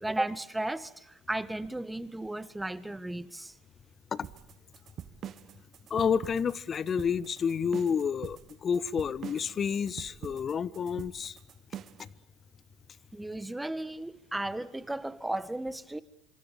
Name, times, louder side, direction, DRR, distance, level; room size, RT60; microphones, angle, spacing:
voice 1, 0.0-3.5 13.1-16.0, right 1 dB, 10° right, 1.7 m, -35 dB
sound 1, 4.2-12.1, right 10 dB, 45° right, 1.3 m, -44 dB
voice 2, 5.9-11.3, left 7 dB, 35° left, 1.2 m, -30 dB
26.5 x 26.5 x 7.3 m
hypercardioid pair, 75°, 0 cm